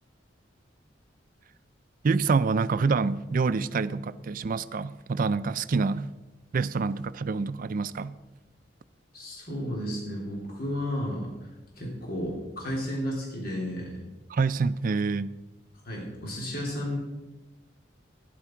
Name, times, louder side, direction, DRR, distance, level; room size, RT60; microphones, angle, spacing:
voice 1, 2.0-6.1 6.5-8.2 14.3-15.3, right 4 dB, 50° right, 0.4 m, -26 dB
voice 2, 9.1-11.3 11.8-14.0 15.8-17.0, equal, 55° left, 3.2 m, -32 dB
12.0 x 10.5 x 4.5 m
head